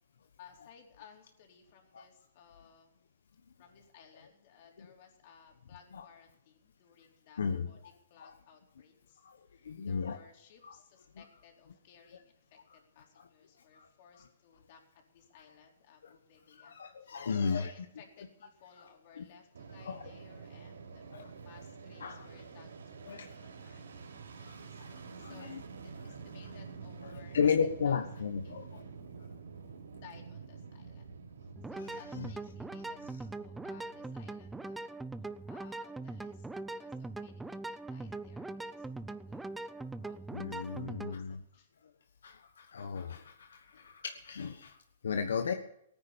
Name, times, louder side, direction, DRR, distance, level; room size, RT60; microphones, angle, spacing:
voice 1, 0.4-2.9 3.6-7.8 8.1-9.2 9.5-14.8 15.1-16.7 17.0-24.1 24.4-24.8 25.2-25.5 25.8-28.0 28.4-28.9 29.9-31.1 31.4-35.0 35.5-37.4 37.7-39.0 39.3-39.5 40.0-41.7 43.7-43.9, left 7 dB, 50° left, 2 dB, 4.2 m, -59 dB
voice 2, 7.4-7.9 8.2-8.4 9.2-10.2 10.6-10.8 11.1-11.2 13.2-13.3 13.7-13.9 14.1-14.2 16.0-16.1 16.5-17.7 19.2-19.3 19.8-20.1 21.1-21.3 22.0-22.4 23.1-23.3 24.4-25.6 27.0-28.8 31.8-32.3 40.3-41.4 42.2-45.5, left 6 dB, 80° left, 6 dB, 1.3 m, -35 dB
Fixed-wing aircraft airplane, 19.5-34.7, right 5 dB, 85° right, 3.6 m, -48 dB
sound 1, 31.6-41.2, right 2 dB, 5° right, 0.6 m, -41 dB
18.0 x 9.7 x 6.9 m, 0.75 s
hypercardioid pair, 140°, 0 cm